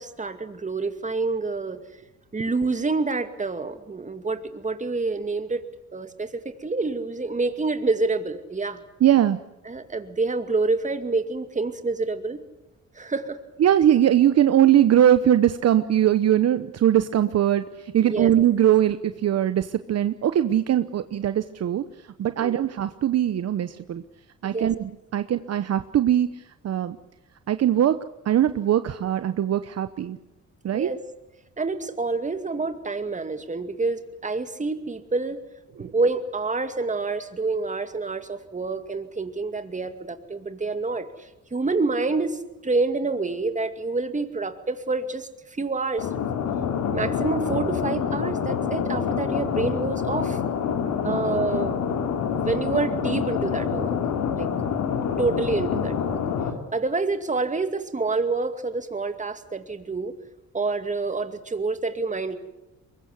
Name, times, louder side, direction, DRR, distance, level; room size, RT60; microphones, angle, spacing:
voice 1, 0.0-1.8 2.3-5.6 5.9-8.8 9.7-12.4 12.9-13.4 18.0-18.3 22.4-22.6 24.4-24.7 30.7-31.0 31.6-35.4 35.8-46.1 46.9-50.4 51.0-52.0 52.4-54.0 54.4-54.5 55.2-56.2 56.7-60.1 60.5-62.4, right 3 dB, 25° right, 8 dB, 2.4 m, -27 dB
voice 2, 9.0-9.4 13.6-21.8 22.2-24.0 24.4-27.0 27.5-30.2 30.6-30.9 35.8-35.9 51.0-51.2, right 11 dB, 55° right, 11 dB, 1.0 m, -21 dB
sound 1, 46.0-56.5, left 7 dB, 80° left, 3.3 m, -26 dB
23.0 x 21.5 x 8.3 m, 0.94 s
cardioid pair, 90°, 30 cm